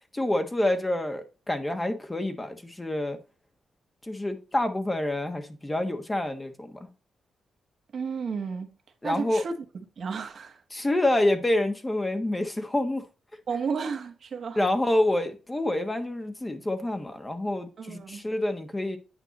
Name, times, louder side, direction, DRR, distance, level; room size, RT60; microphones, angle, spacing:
voice 1, 0.1-3.2 4.0-6.9 9.0-9.4 10.7-13.0 14.6-19.0, left 1 dB, 15° left, 1.2 m, -27 dB
voice 2, 7.9-8.7 9.0-9.6 10.0-10.6 13.5-14.6 17.8-18.2, right 5 dB, 55° right, 1.2 m, -32 dB
9.0 x 5.4 x 4.0 m
cardioid pair, 90°, 0 cm